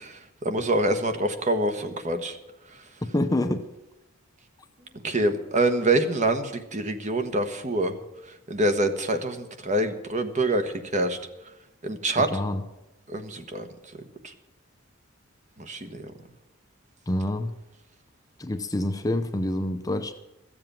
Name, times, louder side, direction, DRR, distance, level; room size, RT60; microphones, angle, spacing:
voice 1, 0.0-2.4 5.0-8.0 8.5-11.2 11.8-12.3 13.1-13.7 14.2-14.3 15.6-16.1, right 1 dB, 35° right, 1.2 m, -26 dB
voice 2, 3.1-3.6 12.3-12.6 17.1-17.5 18.4-20.1, left 1 dB, 15° left, 0.6 m, -26 dB
14.0 x 7.7 x 8.9 m
head